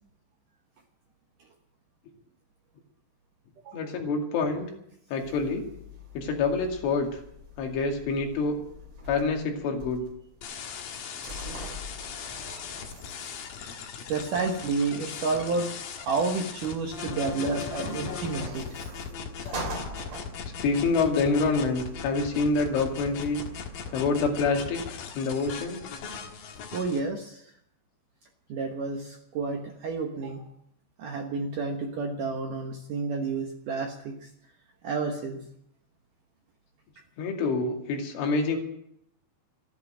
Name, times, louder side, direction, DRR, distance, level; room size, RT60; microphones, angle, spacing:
voice 1, 3.7-4.7 5.1-5.7 6.1-7.2 7.6-8.6 9.1-10.1 17.3-18.2 19.1-20.0 20.6-23.4 23.9-25.8 37.2-38.6, left 4 dB, 80° left, 2 dB, 4.8 m, -27 dB
sound 1, 5.2-24.0, equal, 40° right, 2.9 m, -45 dB
sound 2, 10.4-27.0, left 6 dB, 60° left, 2.8 m, -38 dB
voice 2, 14.1-15.7 16.0-18.7 26.7-27.5 28.5-30.5 31.0-34.3 34.8-35.5, right 4 dB, 65° right, 2 dB, 2.1 m, -30 dB
14.5 x 11.0 x 8.9 m, 0.73 s
omnidirectional pair, 5.4 m